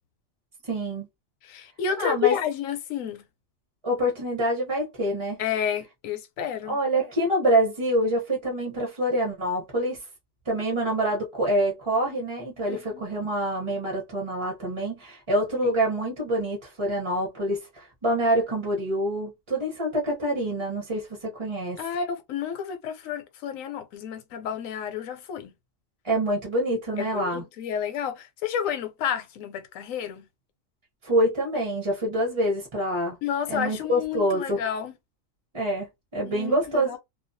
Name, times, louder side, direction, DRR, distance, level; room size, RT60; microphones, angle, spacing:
voice 1, 0.7-1.1 2.0-2.4 3.8-5.4 6.7-10.0 10.5-21.8 26.0-27.4 31.0-33.2 33.5-34.6 35.5-36.9, right 1 dB, 30° right, 0.7 m, -26 dB
voice 2, 1.5-3.2 5.4-6.8 12.7-13.0 15.6-15.7 21.8-25.5 27.0-30.3 33.2-34.9 36.2-37.0, left 8 dB, 80° left, 1.0 m, -30 dB
2.3 x 2.2 x 2.6 m
omnidirectional pair, 1.4 m